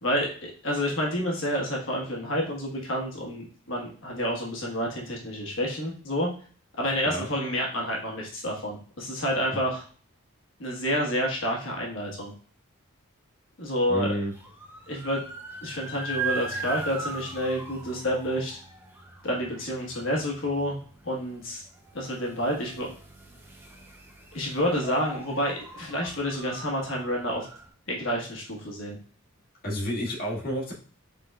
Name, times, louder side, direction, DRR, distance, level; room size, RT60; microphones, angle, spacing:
voice 1, 0.0-6.3 6.8-9.8 10.6-12.3 13.6-14.2 14.9-15.2 15.6-18.6 19.2-20.8 21.0-21.6 21.9-22.9 24.3-27.5 27.9-29.0, equal, 65° left, -1 dB, 1.3 m, -29 dB
voice 2, 13.9-14.3 29.6-30.7, equal, 45° left, -5 dB, 1.8 m, -30 dB
sound 1, 14.1-27.7, right 3 dB, 10° right, 0.5 m, -39 dB
5.1 x 3.8 x 2.3 m, 0.42 s
head